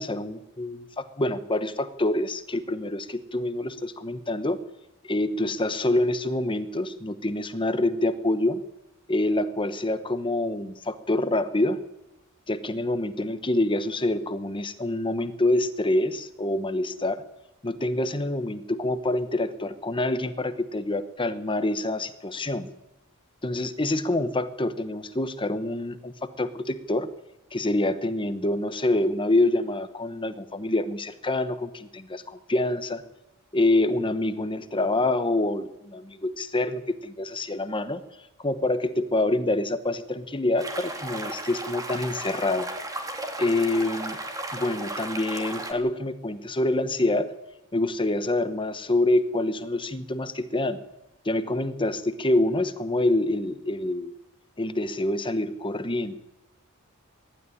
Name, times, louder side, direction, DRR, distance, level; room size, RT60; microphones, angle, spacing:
voice 1, 0.0-4.6 5.0-8.6 9.1-11.8 12.5-17.2 17.6-22.7 23.4-27.1 27.5-33.0 33.5-38.0 38.4-42.7 43.4-44.2 44.5-47.3 47.7-50.8 51.2-54.1 54.6-56.1, left 2 dB, 25° left, 12 dB, 1.0 m, -26 dB
sound 1, 40.6-45.7, right 2 dB, 15° right, 2.6 m, -35 dB
22.5 x 12.5 x 9.9 m, 0.93 s
head